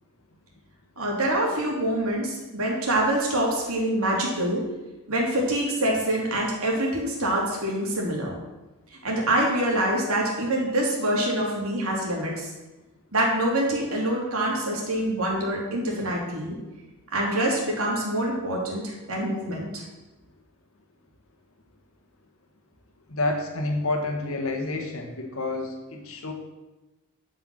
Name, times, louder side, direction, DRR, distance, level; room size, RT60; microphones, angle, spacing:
voice 1, 1.0-4.7 5.1-8.3 8.9-12.5 13.1-16.6 17.1-19.8, right 1 dB, 70° right, -3 dB, 3.2 m, -25 dB
voice 2, 23.1-26.3, left 2 dB, 65° left, 2 dB, 1.5 m, -29 dB
11.0 x 5.9 x 6.3 m, 1.1 s
head